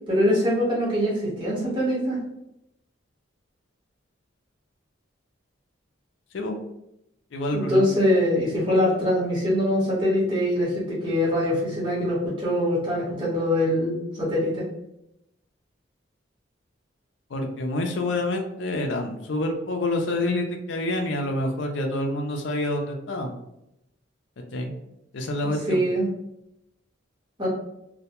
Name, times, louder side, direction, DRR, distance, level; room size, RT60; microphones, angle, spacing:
voice 1, 0.0-2.2 7.5-14.6 25.7-26.1 27.4-27.5, equal, 25° right, -7 dB, 1.0 m, -23 dB
voice 2, 7.3-7.9 17.3-23.3 24.4-24.7 25.1-25.8, left 1 dB, 65° left, 4 dB, 0.4 m, -27 dB
2.2 x 2.1 x 2.8 m, 0.82 s
head